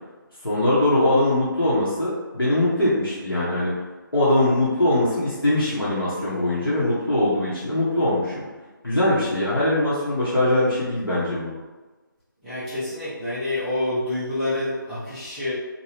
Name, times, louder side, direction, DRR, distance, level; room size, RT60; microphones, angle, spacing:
voice 1, 0.4-3.7 4.1-8.5 8.8-11.5, left 1 dB, 90° left, -9 dB, 1.0 m, -21 dB
voice 2, 12.4-15.5, left 1 dB, ahead, -15 dB, 1.0 m, -27 dB
2.6 x 2.3 x 3.2 m, 1.2 s
figure-of-eight pair, 155°, 11 cm